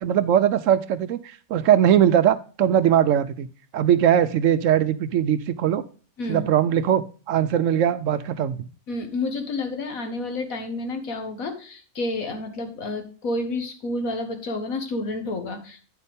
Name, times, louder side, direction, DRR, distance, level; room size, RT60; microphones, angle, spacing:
voice 1, 0.0-3.5 3.7-5.8 6.3-8.7, right 10 dB, 70° right, 13 dB, 0.9 m, -20 dB
voice 2, 8.9-15.8, left 2 dB, 70° left, 6 dB, 1.8 m, -30 dB
9.7 x 6.7 x 3.5 m, 0.39 s
omnidirectional pair, 1.5 m